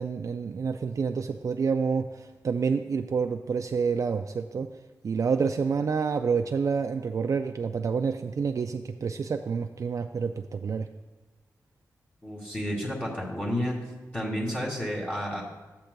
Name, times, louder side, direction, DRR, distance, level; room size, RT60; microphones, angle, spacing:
voice 1, 0.0-4.7 5.0-10.9, right 5 dB, 55° right, 5 dB, 0.3 m, -28 dB
voice 2, 12.2-13.8 14.1-15.4, equal, 20° left, -5 dB, 2.1 m, -31 dB
12.0 x 8.6 x 2.2 m, 1.2 s
cardioid pair, 60°, 7 cm